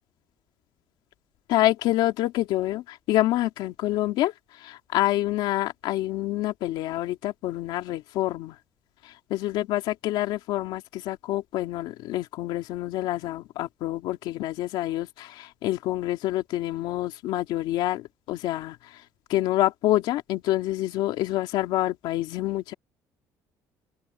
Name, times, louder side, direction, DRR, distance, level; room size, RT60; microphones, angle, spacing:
voice 1, 1.5-8.6 9.0-19.0 19.3-22.7, left 15 dB, 80° left, 2.4 m, -27 dB
open air
cardioid pair, 165°, 8 cm